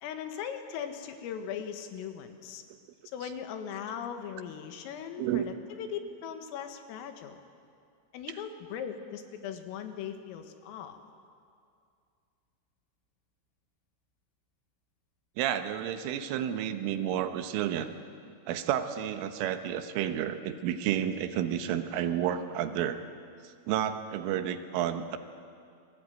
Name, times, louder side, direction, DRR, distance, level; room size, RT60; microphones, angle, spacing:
voice 1, 0.0-2.6 3.1-7.4 8.1-11.0, left 8 dB, 90° left, 7 dB, 4.3 m, -39 dB
voice 2, 15.4-17.9 18.5-23.0 23.4-25.2, right 10 dB, 80° right, 9 dB, 3.6 m, -31 dB
28.5 x 20.5 x 9.4 m, 2.3 s
omnidirectional pair, 5.8 m